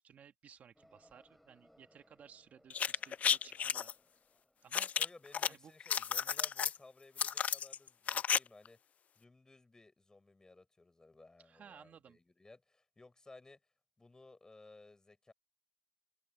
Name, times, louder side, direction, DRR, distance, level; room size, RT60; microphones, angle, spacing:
voice 1, 0.0-3.9 4.6-4.9 5.5-5.7 11.4-12.2, right 8 dB, 70° right, 2.1 m, -58 dB
sound 1, 0.7-5.1, equal, 5° left, 3.8 m, -68 dB
sound 2, 2.7-3.9 4.7-5.5 5.8-6.8 7.2-8.4 8.6-8.7, left 8 dB, 65° left, 0.3 m, -33 dB
voice 2, 5.0-8.8 9.2-13.6 14.0-15.3, left 2 dB, 25° left, 7.4 m, -58 dB
cardioid pair, 85°, 3 cm